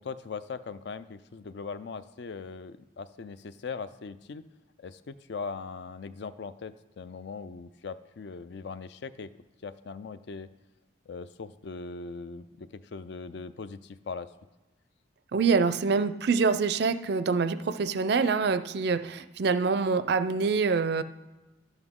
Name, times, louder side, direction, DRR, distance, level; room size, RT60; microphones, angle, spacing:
voice 1, 0.0-4.4 4.8-9.3 9.6-10.5 11.1-14.3, left 4 dB, 60° left, 14 dB, 0.4 m, -40 dB
voice 2, 15.3-21.0, right 4 dB, 55° right, 13 dB, 0.4 m, -25 dB
11.5 x 8.0 x 3.7 m, 1.1 s
head